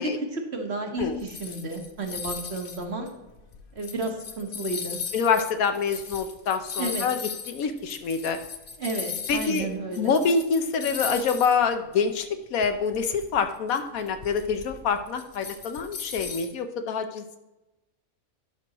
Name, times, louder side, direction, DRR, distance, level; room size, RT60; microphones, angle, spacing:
voice 1, 0.0-3.1 3.7-5.0 6.8-7.1 8.8-10.1, right 2 dB, 50° right, 2 dB, 1.5 m, -32 dB
sound 1, 1.0-9.7 9.9-11.6 11.9-12.0 12.6-16.5, left 6 dB, 50° left, 0.7 m, -38 dB
voice 2, 5.1-7.2 7.5-8.4 9.3-9.7 10.0-17.4, left 5 dB, 85° left, 8 dB, 1.2 m, -26 dB
11.0 x 6.1 x 3.0 m, 0.99 s
omnidirectional pair, 1.4 m